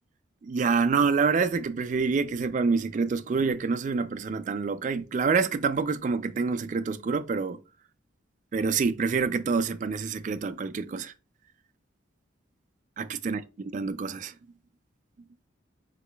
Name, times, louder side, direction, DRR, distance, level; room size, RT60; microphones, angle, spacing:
voice 1, 0.4-7.6 8.5-11.1 13.0-13.4 13.7-14.3, right 5 dB, 40° right, 0.3 m, -27 dB
4.8 x 3.9 x 2.2 m
head